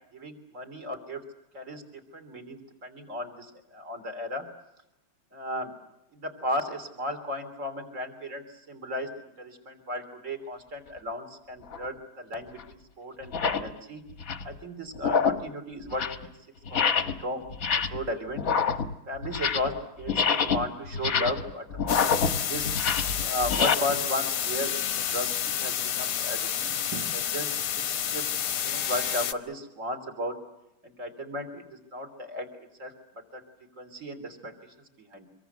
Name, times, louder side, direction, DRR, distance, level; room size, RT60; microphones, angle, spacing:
voice 1, 0.1-1.2 1.5-1.8 2.1-4.4 5.3-5.7 6.1-14.0 14.5-16.3 16.7-18.5 19.1-22.0 22.3-22.7 23.2-26.8 27.1-28.2 28.6-30.3 30.8-31.6 31.9-32.9 33.3-33.4 33.8-34.5 35.0-35.3, left 1 dB, 35° right, 6 dB, 3.7 m, -35 dB
sound 1, 11.7-11.9 12.6-12.7 13.2-13.7 14.1-14.5 14.9-15.5 15.8-16.3 16.7-17.2 17.5-18.1 18.4-19.8 20.0-23.7, left 6 dB, 45° left, 1.5 m, -27 dB
sound 2, 21.9-29.3, left 9 dB, 90° left, 2.1 m, -30 dB
sound 3, 23.9-24.3 26.9-27.3 27.8-27.9, right 6 dB, 55° right, 2.3 m, -41 dB
26.0 x 22.5 x 8.1 m, 0.89 s
omnidirectional pair, 2.3 m